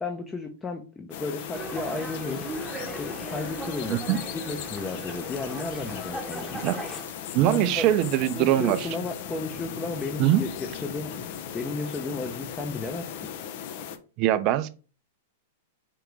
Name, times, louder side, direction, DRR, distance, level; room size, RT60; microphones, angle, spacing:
voice 1, 0.0-2.5 2.9-6.6 7.5-7.9 8.3-11.1 11.5-13.1, left 3 dB, 15° left, 0.7 m, -33 dB
sound 1, 1.1-14.0, left 9 dB, 55° left, 0.6 m, -38 dB
Water tap faucet / Sink (filling or washing), 1.3-8.1 8.4-8.5, left 5 dB, 80° left, 0.9 m, -49 dB
Dog, 1.5-7.0, right 1 dB, 5° right, 1.0 m, -38 dB
voice 2, 3.9-4.2 6.6-6.8 7.3-8.9 10.2-10.4 14.2-14.7, right 13 dB, 45° right, 0.5 m, -22 dB
4.6 x 2.9 x 3.7 m
hypercardioid pair, 115°, 0 cm